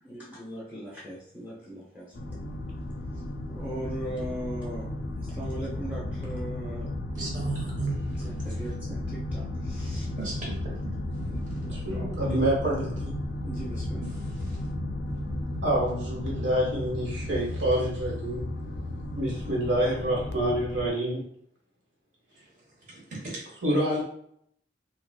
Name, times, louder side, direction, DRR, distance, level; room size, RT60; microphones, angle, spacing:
voice 1, 0.0-2.2 3.5-4.9 5.2-6.9 8.2-10.1 11.3-12.1 13.5-14.0, right 1 dB, 10° right, -6 dB, 0.7 m, -39 dB
sound 1, 2.1-20.9, left 1 dB, 60° left, 0.4 m, -34 dB
voice 2, 7.1-8.0 10.2-10.9 14.5-14.6 22.9-23.4, right 3 dB, 45° right, -4 dB, 1.1 m, -35 dB
voice 3, 11.7-13.2 15.6-18.5 19.1-21.2 23.6-24.0, right 1 dB, 80° right, -4 dB, 1.3 m, -27 dB
3.8 x 2.4 x 2.2 m, 0.67 s
head